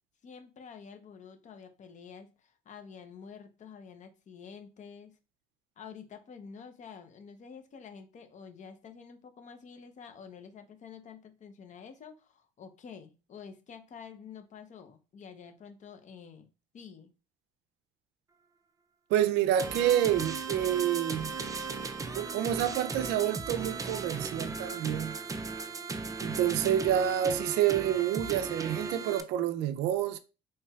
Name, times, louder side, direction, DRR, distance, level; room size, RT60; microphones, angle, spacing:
voice 1, 0.2-5.1 5.8-16.5 16.7-17.1, left 6 dB, 45° left, 0.8 m, -49 dB
voice 2, 19.1-21.4 22.1-25.2 26.2-30.2, right 11 dB, 90° right, 0.4 m, -28 dB
sound 1, 19.6-29.2, right 4 dB, 20° right, 0.4 m, -36 dB
4.3 x 3.1 x 2.3 m
cardioid pair, 110°, 17 cm